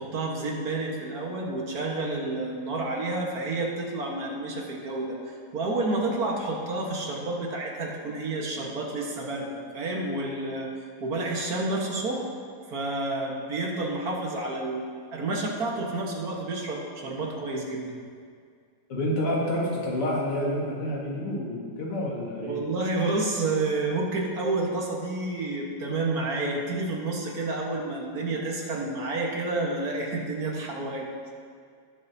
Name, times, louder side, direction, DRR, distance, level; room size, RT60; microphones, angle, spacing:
voice 1, 0.0-10.7 11.0-12.2 12.7-18.0 22.4-31.1, right 2 dB, 45° right, -1 dB, 1.8 m, -30 dB
voice 2, 18.9-22.6, left 1 dB, 85° left, -4 dB, 2.8 m, -28 dB
18.0 x 7.5 x 2.8 m, 2.1 s
omnidirectional pair, 2.4 m